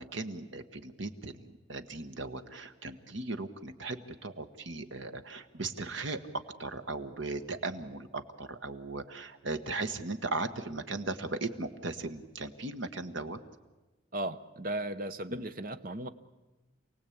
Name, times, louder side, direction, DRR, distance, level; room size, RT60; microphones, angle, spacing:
voice 1, 0.0-6.2 6.6-13.4 15.3-15.4, right 3 dB, 70° right, 8 dB, 1.4 m, -37 dB
voice 2, 14.1-16.1, right 1 dB, 45° right, 10 dB, 0.9 m, -36 dB
27.5 x 18.0 x 8.7 m, 1.2 s
head